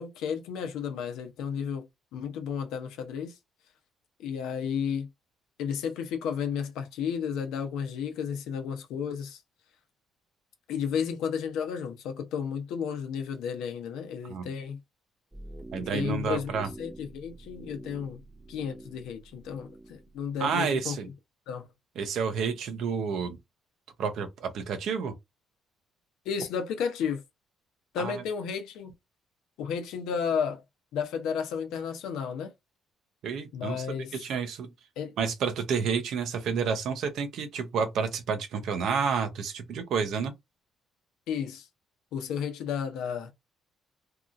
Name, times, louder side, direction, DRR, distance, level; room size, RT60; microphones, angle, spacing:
voice 1, 0.0-1.9 2.1-3.3 4.2-5.1 5.6-9.4 10.7-14.8 15.7-18.2 18.5-21.0 21.5-21.7 26.3-27.2 27.9-28.9 29.6-30.6 30.9-32.5 33.5-34.1 35.0-35.1 41.3-41.7 42.1-43.3, left 7 dB, 85° left, 0.7 m, -32 dB
sound 1, 15.3-20.8, right 2 dB, 10° right, 0.5 m, -47 dB
voice 2, 15.7-16.7 20.4-21.1 22.0-23.4 24.0-25.1 28.0-28.2 33.2-34.7 35.2-40.3, right 6 dB, 75° right, 0.6 m, -30 dB
2.8 x 2.6 x 2.5 m
cardioid pair, 85°, 0 cm